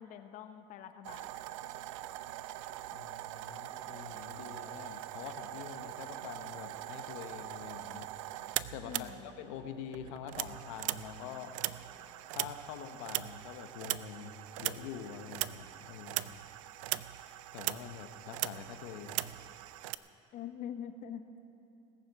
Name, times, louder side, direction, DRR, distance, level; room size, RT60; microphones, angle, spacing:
voice 1, 0.0-1.4 8.8-9.3 20.3-21.3, left 9 dB, 50° left, 9 dB, 0.9 m, -44 dB
sound 1, 1.0-9.7 9.9-20.0, right 15 dB, 90° right, 0.5 m, -41 dB
voice 2, 2.9-8.1 8.7-9.1 9.4-11.5 12.3-16.4 17.5-19.3, left 8 dB, 80° left, 7 dB, 1.0 m, -45 dB
Musical instrument, 6.0-12.4, right 7 dB, 50° right, 1.0 m, -62 dB
18.5 x 7.1 x 8.1 m, 2.9 s
supercardioid pair, 115°, 16 cm